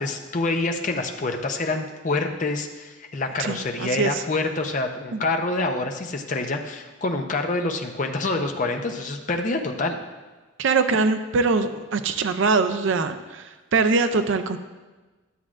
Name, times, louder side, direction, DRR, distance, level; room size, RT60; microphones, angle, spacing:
voice 1, 0.0-10.0, left 2 dB, 35° left, 4 dB, 0.6 m, -26 dB
voice 2, 3.4-4.2 5.1-5.2 10.6-14.6, right 4 dB, 65° right, 9 dB, 0.4 m, -23 dB
11.0 x 7.3 x 2.5 m, 1.2 s
head